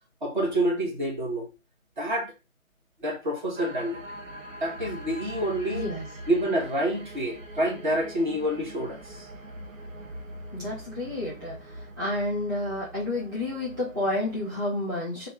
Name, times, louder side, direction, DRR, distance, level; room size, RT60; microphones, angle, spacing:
voice 1, 0.2-1.5 2.0-2.3 3.0-4.0 4.6-5.9 6.3-9.0, right 1 dB, 35° right, 1.2 m, -27 dB
sound 1, 3.6-14.7, right 1 dB, 65° right, 1.0 m, -43 dB
voice 2, 5.7-6.0 10.5-15.3, left 1 dB, 15° right, 0.8 m, -30 dB
3.3 x 2.6 x 4.3 m
figure-of-eight pair, 155°, 42 cm